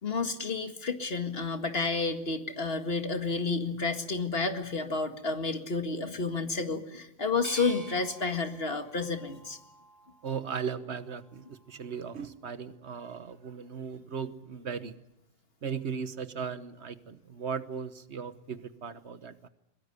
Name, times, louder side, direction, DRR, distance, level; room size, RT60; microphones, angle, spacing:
voice 1, 0.0-9.6, left 4 dB, 55° left, 7 dB, 2.2 m, -31 dB
sound 1, 7.4-10.4 10.9-11.7, equal, 15° left, 7.2 m, -47 dB
voice 2, 10.2-15.0 15.6-19.5, right 6 dB, 65° right, 12 dB, 1.4 m, -37 dB
22.0 x 22.0 x 8.2 m, 0.90 s
omnidirectional pair, 1.2 m